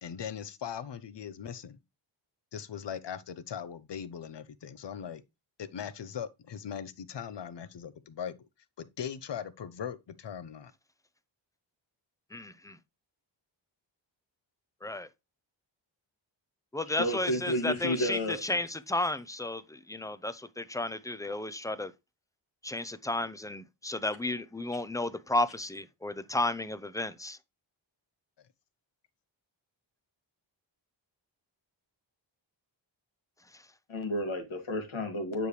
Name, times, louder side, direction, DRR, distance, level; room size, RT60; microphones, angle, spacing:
voice 1, 0.0-1.8 2.5-5.2 5.6-8.5 8.8-10.7, left 8 dB, 60° left, 0.8 m, -40 dB
voice 2, 12.3-12.8 14.8-15.1 16.7-21.9 22.6-27.4, left 2 dB, 5° left, 0.5 m, -33 dB
voice 3, 16.9-18.4 33.9-35.5, left 1 dB, 80° left, 2.2 m, -31 dB
9.2 x 5.1 x 3.2 m
wide cardioid pair, 120°, 47 cm